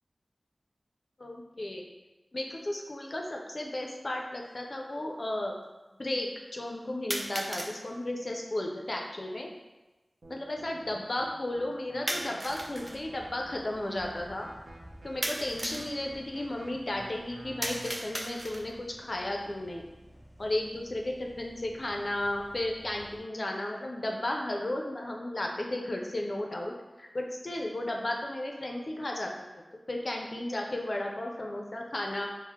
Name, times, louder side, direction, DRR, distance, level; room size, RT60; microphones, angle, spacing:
voice 1, 1.2-1.8 2.3-5.5 6.0-9.5 10.3-14.5 15.0-19.8 20.4-29.6 29.9-32.3, left 1 dB, 55° left, 1 dB, 0.4 m, -34 dB
sound 1, 2.7-2.8 3.8-3.9 7.1-7.8 12.1-13.0 15.2-15.9 17.6-18.8, right 1 dB, 40° right, 0.4 m, -35 dB
sound 2, 10.2-17.9, right 1 dB, 75° right, 0.7 m, -49 dB
sound 3, 12.5-23.2, equal, 20° right, 1.5 m, -54 dB
4.3 x 2.0 x 3.5 m, 1.1 s
wide cardioid pair, 55°, 0 cm